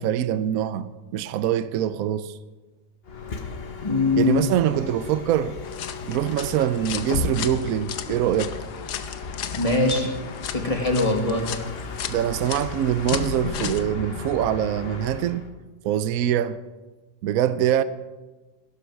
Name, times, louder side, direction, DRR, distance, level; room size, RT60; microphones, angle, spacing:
voice 1, 0.0-2.4 4.1-5.6 6.0-8.6 12.1-15.5 15.8-16.6 17.2-17.8, right 10 dB, 70° right, 0.9 m, -24 dB
Bus, 3.0-15.5, left 4 dB, 40° left, 1.2 m, -34 dB
voice 2, 3.8-4.5 9.5-10.1 10.5-11.5, left 3 dB, 20° left, 1.7 m, -22 dB
sound 1, 5.6-13.8, left 9 dB, 70° left, 1.4 m, -36 dB
17.5 x 11.5 x 4.6 m
omnidirectional pair, 1.9 m